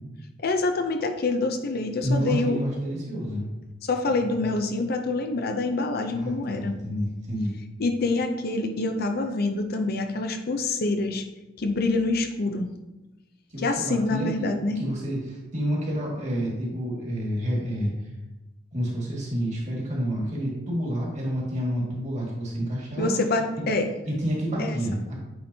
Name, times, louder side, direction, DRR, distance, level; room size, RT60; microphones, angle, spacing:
voice 1, 0.4-2.6 3.8-6.7 7.8-11.2 11.6-12.7 13.6-14.8 23.0-23.9 24.6-24.8, left 3 dB, 55° left, 6 dB, 0.5 m, -26 dB
voice 2, 2.0-3.5 4.4-4.5 6.1-7.6 13.5-14.5 14.8-17.9 18.7-23.2 24.0-25.1, equal, 40° right, -3 dB, 1.8 m, -29 dB
8.5 x 4.4 x 2.7 m, 1.0 s
head